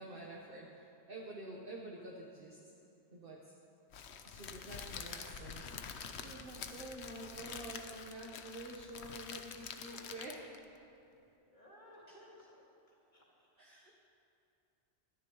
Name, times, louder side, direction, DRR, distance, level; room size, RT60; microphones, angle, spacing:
voice 1, 0.0-2.6 3.1-3.5 4.2-5.8 6.1-10.5 12.1-12.2 13.6-14.0, right 2 dB, 50° right, -3 dB, 1.3 m, -48 dB
Crackle, 3.9-10.6, left 6 dB, 65° left, 1.0 m, -47 dB
voice 2, 9.6-10.5 11.5-12.6 12.9-13.5, left 1 dB, 40° left, -6 dB, 3.1 m, -57 dB
21.0 x 13.0 x 3.1 m, 2.6 s
omnidirectional pair, 1.2 m